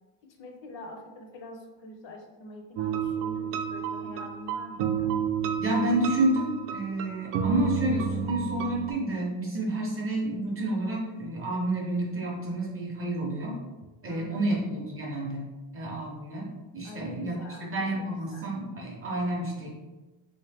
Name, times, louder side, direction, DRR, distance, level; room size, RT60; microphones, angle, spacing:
voice 1, 0.2-5.2 14.1-14.5 16.8-18.5, left 1 dB, 60° left, 3 dB, 0.7 m, -45 dB
sound 1, 2.8-8.9, right 7 dB, 85° right, 0.6 m, -31 dB
voice 2, 5.6-13.6 14.0-15.4 15.7-16.5 16.7-17.3 17.7-19.7, right 1 dB, 30° right, -2 dB, 0.5 m, -29 dB
3.6 x 2.7 x 3.3 m, 1.2 s
cardioid pair, 170°, 50 cm